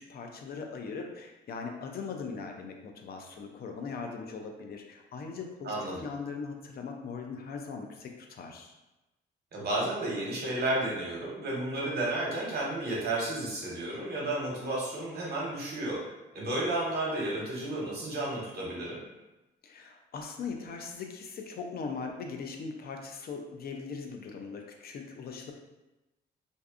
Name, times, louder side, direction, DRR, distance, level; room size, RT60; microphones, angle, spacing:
voice 1, 0.0-5.7 6.0-8.7 19.6-25.5, left 5 dB, 50° left, 3 dB, 0.4 m, -40 dB
voice 2, 5.6-6.0 9.5-16.0 16.3-19.0, right 1 dB, 55° right, -4 dB, 1.0 m, -32 dB
2.5 x 2.3 x 2.4 m, 1.0 s
cardioid pair, 90°, 20 cm